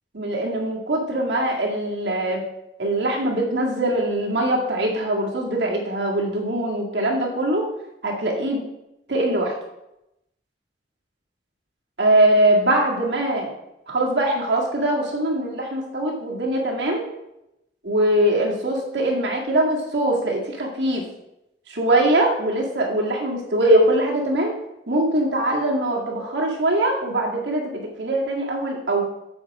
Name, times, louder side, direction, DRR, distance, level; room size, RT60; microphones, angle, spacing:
voice 1, 0.1-2.4 2.8-7.7 8.0-8.6 9.1-9.5 12.0-13.5 13.9-17.0 17.8-21.0 21.7-24.5 24.9-29.0, right 1 dB, 75° right, -2 dB, 2.0 m, -22 dB
7.7 x 4.7 x 6.1 m, 0.89 s
head